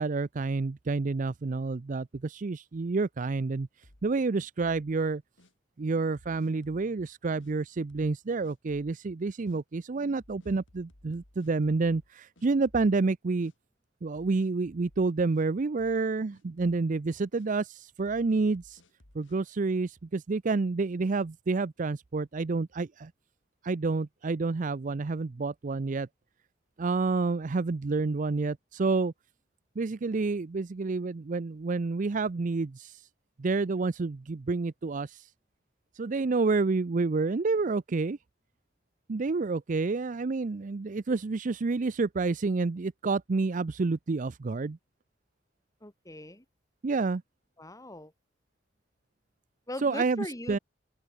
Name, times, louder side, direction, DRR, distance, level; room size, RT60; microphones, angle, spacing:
voice 1, 0.0-3.7 4.0-5.2 5.8-13.5 14.0-18.8 19.1-23.1 23.6-26.1 26.8-29.1 29.8-33.0 33.4-35.2 36.0-38.2 39.1-44.8 46.8-47.2 49.8-50.6, right 3 dB, 45° right, 0.5 m, -29 dB
sound 1, 3.8-4.9 5.4-5.5 6.1-6.9 7.4-7.5 7.9-8.2 8.4-9.0 9.4-9.6 10.2-12.1 12.4-13.1 13.4-13.5 14.1-15.5 15.8-16.1 16.3-16.8 17.3-17.5 18.1-19.4, left 1 dB, 80° left, 3.4 m, -60 dB
voice 2, 45.8-46.4 47.6-48.1 49.7-50.6, left 1 dB, 20° left, 3.1 m, -40 dB
open air
head